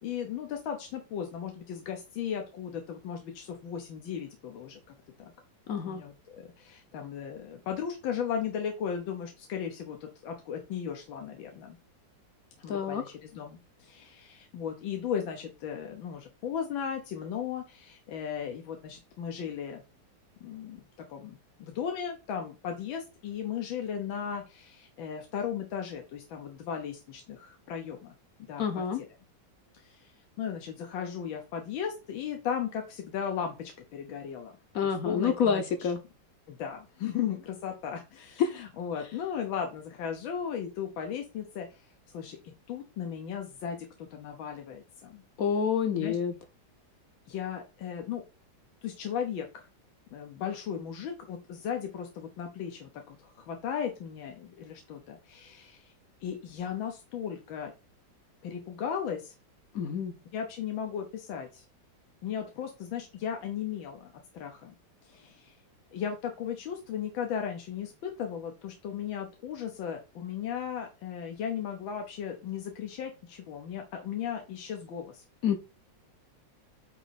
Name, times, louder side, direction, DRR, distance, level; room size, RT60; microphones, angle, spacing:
voice 1, 0.0-5.3 5.9-11.8 12.6-19.8 20.4-20.8 21.1-28.1 28.5-28.8 29.7-34.5 34.8-35.6 36.5-41.8 42.1-42.4 42.7-45.2 45.9-46.2 47.3-48.2 48.8-49.7 50.1-55.9 56.2-57.7 58.4-59.3 60.3-61.6 62.2-64.7 65.0-65.5 65.9-75.2, left 8 dB, 90° left, 1.7 m, -36 dB
voice 2, 5.7-6.0 12.7-13.0 28.6-29.0 34.7-36.0 38.4-38.7 45.4-46.3 59.7-60.1 75.4-75.6, left 7 dB, 60° left, 1.0 m, -28 dB
8.9 x 3.1 x 4.1 m
omnidirectional pair, 2.1 m